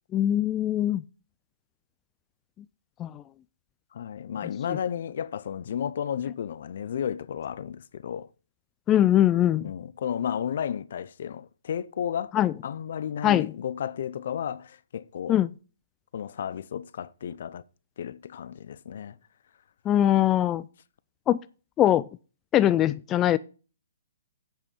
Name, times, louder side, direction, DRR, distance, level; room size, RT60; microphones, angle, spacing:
voice 1, 0.1-1.0 3.0-3.2 8.9-9.7 12.3-12.5 13.2-13.5 15.3-15.5 19.9-20.6 21.3-21.4 21.8-22.1 22.5-23.4, left 12 dB, 20° left, 0.4 m, -22 dB
voice 2, 3.9-8.3 9.6-12.3 12.6-15.5 16.1-17.6 18.0-19.2, left 8 dB, 60° left, 0.6 m, -33 dB
7.7 x 7.1 x 5.3 m
hypercardioid pair, 150°, 0 cm